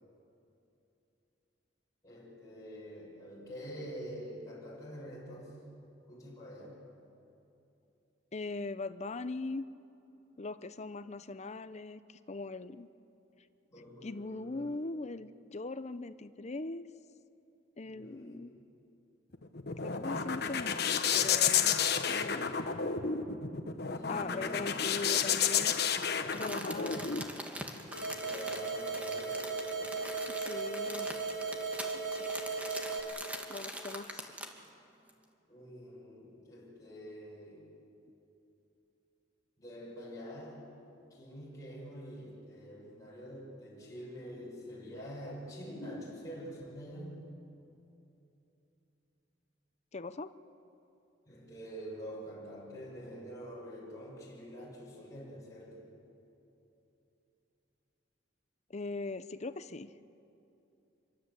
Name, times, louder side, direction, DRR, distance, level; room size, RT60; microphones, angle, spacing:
voice 1, 2.0-5.7 6.1-6.8 13.7-14.6 17.8-18.6 23.9-24.7 26.6-27.3 28.1-30.1 35.5-37.7 39.6-40.8 41.1-47.3 51.3-55.9, equal, 20° left, -6 dB, 6.5 m, -46 dB
voice 2, 8.3-9.6 10.4-12.9 14.0-16.9 17.8-18.6 19.8-21.8 22.1-22.6 24.1-25.7 26.3-27.1 30.3-31.1 31.9-32.5 33.5-34.3 49.9-50.3 58.7-59.9, left 3 dB, 40° left, 12 dB, 0.7 m, -40 dB
sound 1, 19.3-27.2, left 7 dB, 60° left, 1.3 m, -31 dB
Crumpling crinkling, 26.0-34.7 35.1-35.2, equal, 10° right, 2.1 m, -43 dB
sound 2, 27.9-33.0, right 4 dB, 75° right, 3.8 m, -37 dB
27.0 x 23.0 x 8.2 m, 2.9 s
head